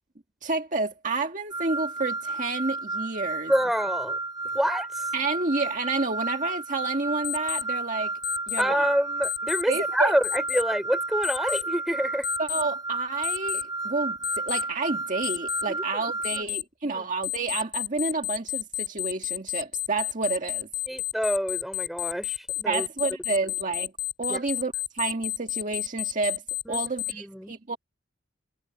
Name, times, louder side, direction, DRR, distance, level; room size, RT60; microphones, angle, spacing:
voice 1, 0.4-3.5 5.1-8.1 8.5-8.9 9.7-10.2 12.4-20.7 22.7-23.9 24.2-26.4 26.7-27.8, right 3 dB, 45° right, 1.8 m, -30 dB
sound 1, 1.5-16.4, right 3 dB, 20° right, 5.0 m, -32 dB
voice 2, 3.5-4.2 4.5-5.0 8.6-12.3 15.7-15.8 16.3-16.5 16.9-17.0 20.9-22.9 24.3-24.4 26.7-27.5, equal, ahead, 5.3 m, -27 dB
Alarm, 7.2-7.6 8.2-8.6 9.2-9.6 10.2-10.6 11.2-11.6 12.2-12.6 13.2-13.6 14.2-14.6 15.2-15.6 16.2-16.6 17.2-27.1, left 18 dB, 25° left, 7.0 m, -30 dB
head